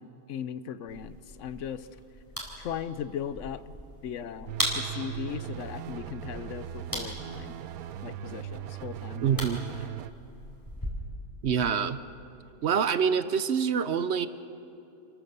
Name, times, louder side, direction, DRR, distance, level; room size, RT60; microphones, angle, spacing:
voice 1, 0.3-1.9 2.6-3.7 4.0-7.5 8.0-10.0, left 8 dB, 60° left, 14 dB, 1.0 m, -38 dB
sound 1, 0.9-10.9, equal, 15° left, 4.0 m, -39 dB
sound 2, 4.5-10.1, right 11 dB, 75° right, 1.1 m, -39 dB
voice 2, 9.2-9.6 11.4-12.0 12.6-14.3, right 7 dB, 60° right, 13 dB, 0.8 m, -26 dB
28.5 x 14.0 x 6.7 m, 2.8 s
omnidirectional pair, 1.6 m